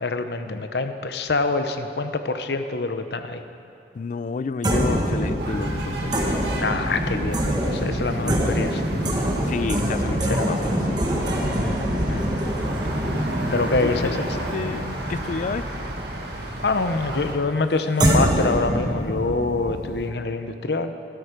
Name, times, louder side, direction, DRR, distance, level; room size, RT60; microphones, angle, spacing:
voice 1, 0.0-3.4 6.5-8.8 10.1-10.6 11.5-12.3 13.5-14.4 16.6-20.9, left 3 dB, 65° left, 8 dB, 0.7 m, -26 dB
voice 2, 3.9-6.4 8.2-8.6 9.5-11.0 13.2-13.5 13.8-14.2 14.5-15.7, left 4 dB, 45° left, 15 dB, 0.3 m, -31 dB
sound 1, 4.6-16.4 18.0-20.1, equal, 25° right, 1.3 m, -25 dB
sound 2, 5.4-17.3, right 1 dB, 65° right, 1.7 m, -32 dB
13.0 x 12.5 x 5.1 m, 2.6 s
head